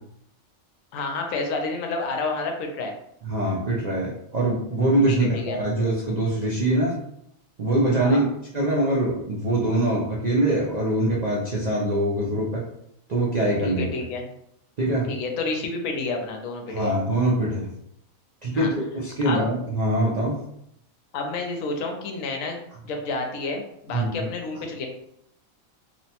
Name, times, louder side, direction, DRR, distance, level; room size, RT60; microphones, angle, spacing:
voice 1, 0.9-2.9 5.1-5.6 7.9-8.3 13.6-14.3 15.1-16.9 18.5-18.7 19.2-19.5 21.1-22.6 22.8-24.9, left 3 dB, 75° left, 3 dB, 1.0 m, -29 dB
voice 2, 3.2-7.0 7.6-8.2 8.5-12.6 13.1-13.9 14.8-15.1 16.7-17.7 18.4-20.4 23.9-24.3, right 1 dB, 75° right, -4 dB, 0.3 m, -23 dB
2.9 x 2.1 x 2.8 m, 0.74 s
omnidirectional pair, 1.4 m